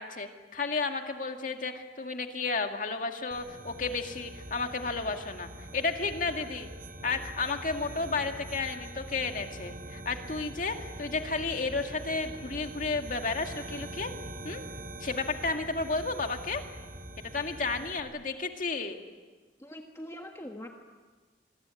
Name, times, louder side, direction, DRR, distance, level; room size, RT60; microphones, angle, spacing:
voice 1, 0.0-6.7 7.0-14.1 14.4-14.6 15.0-16.6 17.3-19.0, left 4 dB, 50° left, 5 dB, 2.2 m, -32 dB
sound 1, 3.3-18.0, right 1 dB, 55° right, 4.3 m, -43 dB
voice 2, 19.6-20.7, equal, 15° left, 3 dB, 1.6 m, -42 dB
26.5 x 21.5 x 9.8 m, 1.3 s
head